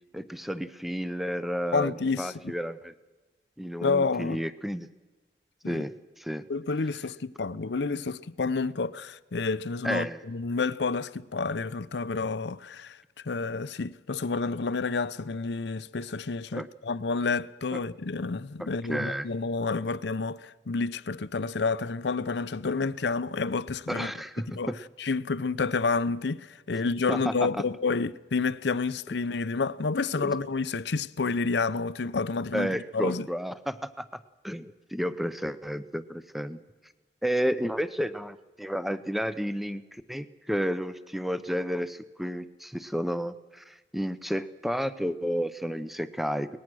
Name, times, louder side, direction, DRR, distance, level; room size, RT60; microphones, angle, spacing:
voice 1, 0.1-2.9 3.6-4.9 5.7-6.4 9.8-10.2 16.5-16.7 17.7-17.8 18.6-19.3 23.9-24.8 27.1-27.3 30.2-30.3 32.5-36.6 37.2-46.6, equal, ahead, 0.6 m, -32 dB
voice 2, 1.7-2.5 3.8-4.4 5.6-5.8 6.5-13.0 13.2-24.1 24.5-24.7 25.0-33.3, left 4 dB, 75° left, 0.6 m, -29 dB
23.0 x 19.5 x 6.2 m
head